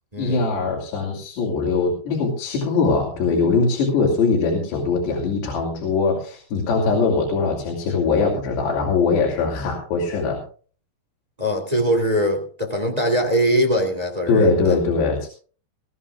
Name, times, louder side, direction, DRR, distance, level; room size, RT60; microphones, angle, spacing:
voice 1, 0.2-10.4 14.3-15.3, left 4 dB, 85° left, -1 dB, 5.1 m, -21 dB
voice 2, 11.4-14.8, equal, 15° right, 3 dB, 1.6 m, -22 dB
21.5 x 15.5 x 2.4 m, 0.40 s
omnidirectional pair, 4.8 m